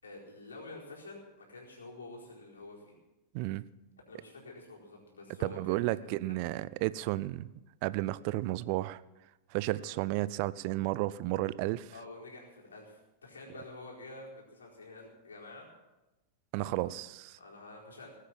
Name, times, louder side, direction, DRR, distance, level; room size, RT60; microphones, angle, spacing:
voice 1, 0.0-2.9 4.1-6.2 9.7-9.9 11.9-15.7 16.6-16.9 17.4-18.2, left 2 dB, 70° left, -2 dB, 4.3 m, -49 dB
voice 2, 3.3-3.6 5.4-7.5 7.8-9.0 9.5-11.9 16.5-17.4, right 18 dB, 45° right, 18 dB, 0.5 m, -32 dB
19.5 x 8.3 x 7.6 m, 1.0 s
figure-of-eight pair, 90°, 0 cm